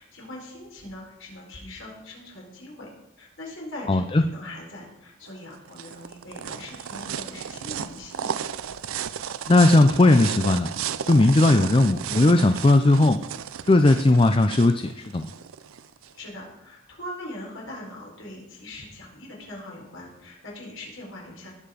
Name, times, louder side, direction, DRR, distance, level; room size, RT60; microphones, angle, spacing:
voice 1, 0.0-2.9 3.2-8.3 16.1-21.5, left 1 dB, 75° left, -2 dB, 4.7 m, -41 dB
voice 2, 3.9-4.2 9.5-10.7 11.1-13.2 13.7-15.3, left 2 dB, 25° left, 8 dB, 0.4 m, -18 dB
sound 1, 5.3-16.1, right 8 dB, 90° right, 0.5 m, -34 dB
19.0 x 6.7 x 5.2 m, 0.87 s
head